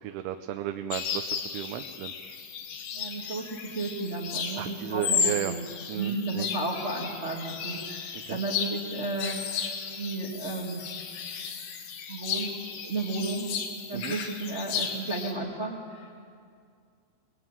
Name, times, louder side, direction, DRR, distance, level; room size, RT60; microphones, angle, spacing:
voice 1, 0.0-2.1 4.6-5.5 5.9-6.5 8.3-8.4 13.9-14.1, right 12 dB, 85° right, 7 dB, 3.2 m, -34 dB
sound 1, 0.9-15.3, left 6 dB, 70° left, 3.9 m, -34 dB
voice 2, 2.9-5.7 5.9-9.4 10.0-10.8 12.1-12.5 12.8-13.5 13.9-16.2, right 2 dB, 60° right, -1 dB, 0.7 m, -33 dB
27.0 x 20.5 x 9.1 m, 2.3 s
omnidirectional pair, 5.3 m